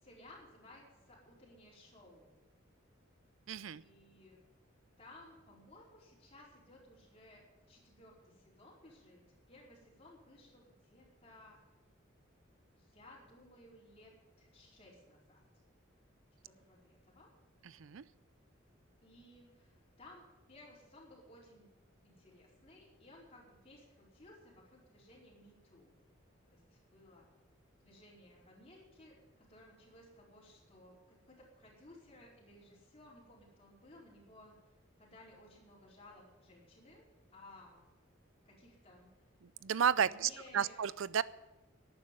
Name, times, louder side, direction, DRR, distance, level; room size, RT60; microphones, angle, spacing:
voice 1, 0.0-2.3 3.7-4.4 5.0-9.2 9.5-11.6 12.8-14.1 14.4-15.4 16.4-17.3 19.0-19.7 20.0-21.7 22.0-25.9 26.5-27.3 27.8-34.5 35.0-37.1 37.3-37.8 38.4-39.1 40.0-40.8, left 1 dB, 30° left, -3 dB, 4.7 m, -59 dB
voice 2, 3.5-3.8 17.8-18.0 39.4-41.2, right 8 dB, 75° right, 19 dB, 0.5 m, -32 dB
12.0 x 9.5 x 9.4 m, 1.0 s
head